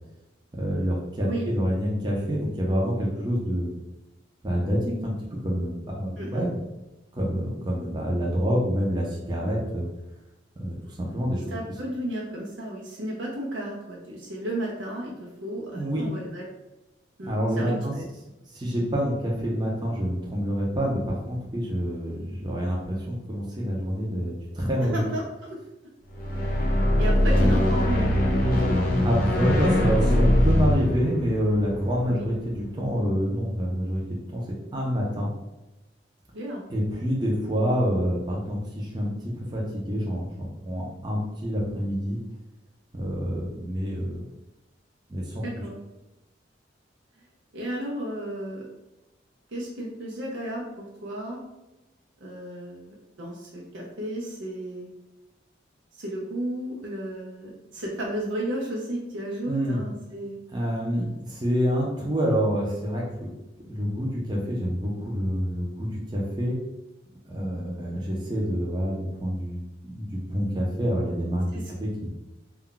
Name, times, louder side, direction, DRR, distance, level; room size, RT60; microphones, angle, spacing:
voice 1, 0.5-3.7 4.4-6.6 7.1-9.9 10.6-11.5 15.7-16.1 17.2-17.9 18.5-25.0 29.0-34.0 34.3-34.4 34.7-35.3 36.7-42.2 42.9-44.2 45.1-45.4 59.5-59.8 60.5-63.3 63.6-66.6 67.3-71.5 71.8-72.1, equal, 25° right, -3 dB, 0.5 m, -27 dB
voice 2, 1.2-1.6 6.2-6.4 11.5-16.4 17.2-18.0 24.9-25.2 25.5-25.6 27.0-28.1 29.4-29.6 32.1-32.3 36.3-36.6 45.4-45.8 47.5-48.6 49.5-51.4 52.2-54.9 55.9-60.4 71.5-71.7, right 1 dB, 85° right, -3 dB, 0.5 m, -33 dB
sound 1, 26.1-32.4, left 1 dB, 50° left, 0.6 m, -22 dB
2.3 x 2.2 x 3.7 m, 0.99 s
head